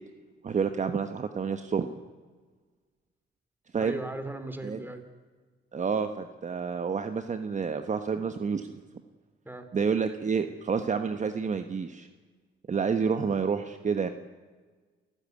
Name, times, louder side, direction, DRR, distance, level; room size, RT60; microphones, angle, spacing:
voice 1, 0.4-1.9 3.7-3.9 4.6-4.8 5.7-8.7 9.7-12.1 12.7-14.1, right 6 dB, 35° right, 8 dB, 1.3 m, -29 dB
voice 2, 3.8-5.0 9.4-9.7, right 2 dB, 10° right, 9 dB, 3.4 m, -37 dB
29.5 x 14.5 x 9.5 m, 1.4 s
cardioid pair, 90°, 20 cm